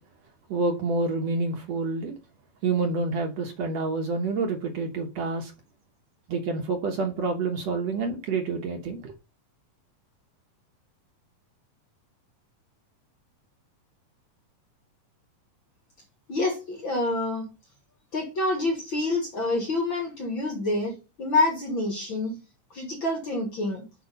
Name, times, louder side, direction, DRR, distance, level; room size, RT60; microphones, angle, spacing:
voice 1, 0.5-2.1 2.6-5.5 6.3-9.1, right 3 dB, 65° right, 1.9 m, -28 dB
voice 2, 16.3-17.5 18.1-22.4 22.7-23.8, left 2 dB, 50° left, 1.7 m, -27 dB
6.6 x 5.4 x 5.3 m
omnidirectional pair, 3.9 m